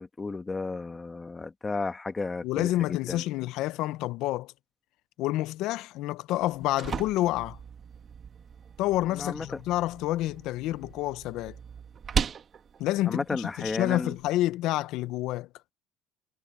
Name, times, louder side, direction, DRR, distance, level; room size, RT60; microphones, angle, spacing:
voice 1, 0.0-3.2 9.1-9.5 13.1-14.2, left 3 dB, 20° left, 1.6 m, -33 dB
voice 2, 2.4-4.5 5.2-7.6 8.8-11.5 12.8-15.5, left 16 dB, 75° left, 0.9 m, -28 dB
sound 1, 6.3-14.3, right 7 dB, 45° right, 2.0 m, -38 dB
supercardioid pair, 80°, 0 cm